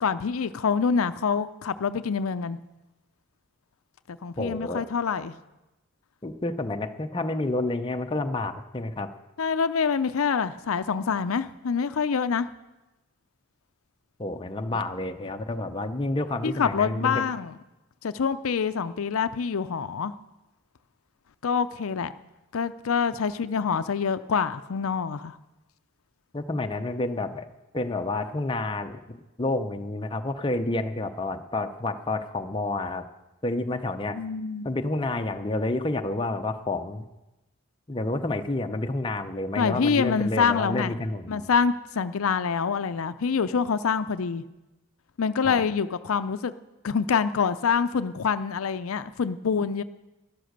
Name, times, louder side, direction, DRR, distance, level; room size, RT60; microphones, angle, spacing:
voice 1, 0.0-2.6 4.1-5.4 9.4-12.5 16.4-17.5 18.0-20.1 21.4-22.1 22.5-25.4 34.1-34.7 39.6-40.9 41.3-44.4 45.2-46.5 46.8-49.8, left 6 dB, 80° left, 12 dB, 0.5 m, -26 dB
voice 2, 4.4-4.8 6.2-9.1 14.2-17.2 26.3-27.5 27.7-33.1 33.4-34.2 34.6-37.1 37.9-41.5 45.4-45.6, left 2 dB, 25° left, 6 dB, 0.7 m, -29 dB
13.0 x 11.5 x 6.6 m, 1.0 s
head